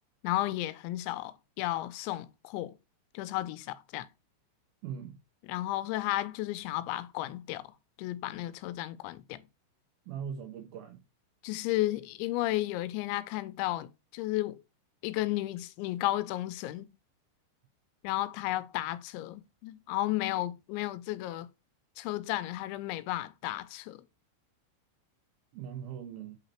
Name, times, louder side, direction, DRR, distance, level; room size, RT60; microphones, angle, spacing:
voice 1, 0.2-2.7 3.1-4.1 5.4-7.6 8.0-9.4 11.4-14.6 15.0-16.9 18.0-21.5 22.0-24.0, left 16 dB, 85° left, 3.0 m, -33 dB
voice 2, 4.8-5.2 10.1-11.0 25.5-26.4, right 8 dB, 80° right, 2.2 m, -40 dB
8.5 x 4.0 x 4.3 m
omnidirectional pair, 5.2 m